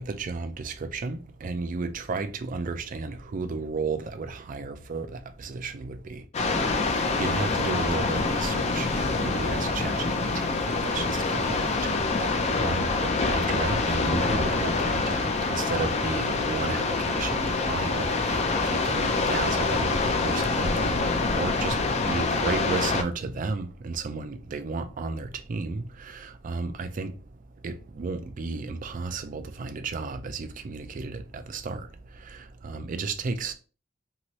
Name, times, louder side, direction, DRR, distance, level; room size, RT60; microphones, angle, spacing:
voice 1, 0.0-6.3 6.5-21.8 22.1-33.5, right 4 dB, 45° right, 0.4 m, -33 dB
sound 1, 6.3-23.0, left 3 dB, 35° left, 0.4 m, -26 dB
2.8 x 2.6 x 3.0 m
head